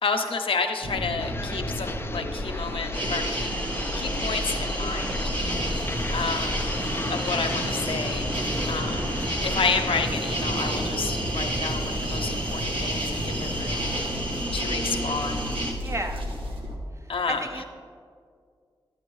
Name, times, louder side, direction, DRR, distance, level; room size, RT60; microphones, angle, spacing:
voice 1, 0.0-3.5 3.9-5.3 6.1-6.7 7.1-8.3 8.7-9.1 9.4-13.9 14.5-15.5 17.1-17.4, left 4 dB, 80° left, 5 dB, 0.7 m, -30 dB
sound 1, 0.8-16.8, equal, 80° right, 1.1 m, -32 dB
Supermarket Ambience Marks and Spencer, 1.2-10.0, left 2 dB, 25° left, 0.4 m, -37 dB
sound 2, 2.9-15.7, right 1 dB, 60° right, 1.4 m, -31 dB
voice 2, 5.5-5.8 15.8-16.2 17.0-17.6, right 2 dB, 30° right, 4 dB, 0.9 m, -34 dB
9.6 x 9.4 x 3.1 m, 2.1 s
cardioid pair, 45°, 9 cm